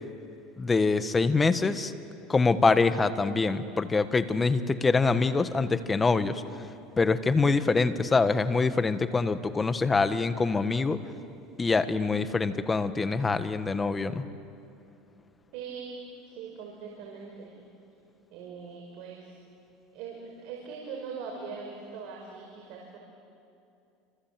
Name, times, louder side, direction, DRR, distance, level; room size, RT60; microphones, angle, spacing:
voice 1, 0.6-1.9 2.3-6.4 7.0-11.0 11.6-14.3, left 4 dB, 20° left, 11 dB, 1.4 m, -25 dB
voice 2, 15.5-16.0 16.3-17.6 18.3-19.4 19.9-23.0, right 5 dB, 65° right, 0 dB, 5.0 m, -41 dB
29.5 x 26.5 x 7.6 m, 2.6 s
supercardioid pair, 115°, 0 cm